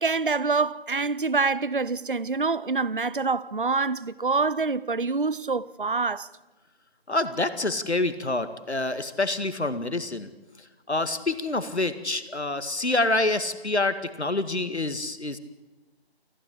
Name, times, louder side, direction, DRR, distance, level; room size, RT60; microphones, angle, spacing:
voice 1, 0.0-6.3, right 4 dB, 55° right, 0.6 m, -26 dB
voice 2, 7.1-10.3 10.9-15.4, left 2 dB, 85° left, 1.9 m, -27 dB
29.0 x 10.5 x 10.0 m
figure-of-eight pair, 175°, 32 cm